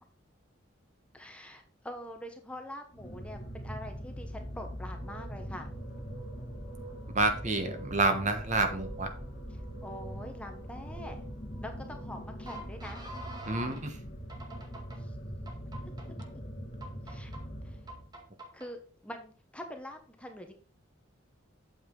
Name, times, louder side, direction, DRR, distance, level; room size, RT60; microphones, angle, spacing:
voice 1, 1.1-5.7 9.8-11.2 11.6-13.0 15.0-15.1 15.8-16.4 17.1-17.3 17.6-17.8 18.5-20.5, left 1 dB, 5° left, 4 dB, 1.0 m, -44 dB
sound 1, 2.9-18.2, equal, 35° left, 1.8 m, -42 dB
sound 2, 4.8-13.8 14.3-15.0 15.5-16.3 16.8-17.4 17.9-18.7, right 2 dB, 20° right, 2.0 m, -49 dB
voice 2, 7.1-9.1 13.5-14.0, right 3 dB, 35° right, 7 dB, 1.3 m, -28 dB
8.6 x 7.2 x 3.8 m, 0.41 s
head